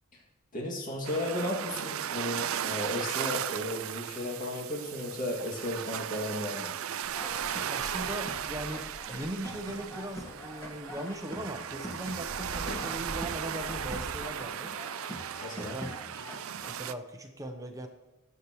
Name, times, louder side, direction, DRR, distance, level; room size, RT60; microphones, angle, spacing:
voice 1, 0.5-6.7 15.4-15.8, left 1 dB, 40° left, -2 dB, 2.3 m, -34 dB
sound 1, 1.0-16.9, right 9 dB, 75° right, 0.4 m, -36 dB
sound 2, 7.0-11.4 11.7-14.2, equal, 65° left, 3.2 m, -45 dB
sound 3, 7.1-16.7, equal, 15° left, 1.6 m, -44 dB
voice 2, 7.7-14.8 15.4-16.0 16.7-17.9, right 1 dB, 15° right, 5 dB, 0.8 m, -39 dB
19.0 x 8.3 x 3.1 m, 1.0 s
head